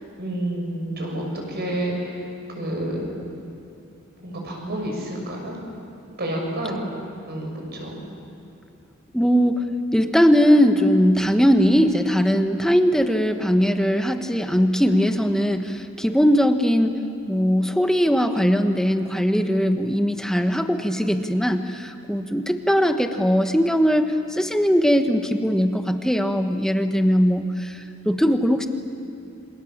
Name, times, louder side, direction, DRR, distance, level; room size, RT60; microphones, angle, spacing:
voice 1, 0.2-2.2 2.5-3.1 4.2-5.6 6.2-6.8 7.3-8.0, right 1 dB, 50° right, 0 dB, 6.5 m, -29 dB
voice 2, 9.1-9.6 9.9-16.9 17.3-28.7, equal, 5° left, 6 dB, 1.2 m, -20 dB
28.5 x 26.0 x 7.4 m, 2.6 s
head